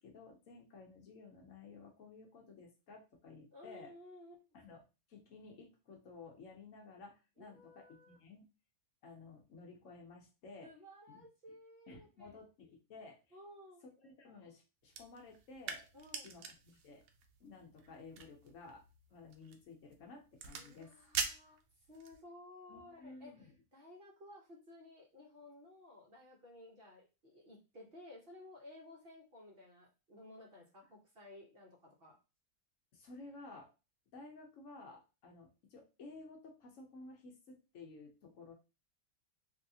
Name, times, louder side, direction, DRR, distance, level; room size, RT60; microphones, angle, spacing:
voice 1, 0.0-3.9 4.5-4.8 5.1-8.4 9.0-10.7 11.1-11.3 11.9-13.4 13.8-15.9 16.2-17.0 17.4-18.8 19.1-20.9 22.7-23.5 32.9-33.7 34.1-38.5, left 3 dB, 65° left, 1 dB, 1.1 m, -54 dB
voice 2, 3.5-4.4 7.4-8.2 10.6-12.3 13.3-13.8 15.9-16.3 20.5-21.6 21.9-32.2, left 1 dB, 50° right, -1 dB, 0.9 m, -56 dB
sound 1, 14.9-22.2, right 6 dB, 75° right, 1.0 m, -45 dB
3.2 x 2.7 x 2.7 m, 0.29 s
omnidirectional pair, 1.6 m